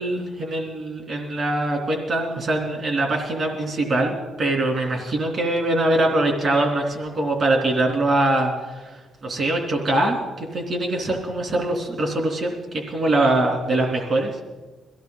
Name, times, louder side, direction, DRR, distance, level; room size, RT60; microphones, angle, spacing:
voice 1, 0.0-8.8 9.2-14.4, right 2 dB, 45° right, 1 dB, 3.1 m, -23 dB
22.5 x 16.0 x 4.0 m, 1.2 s
cardioid pair, 135°, 0 cm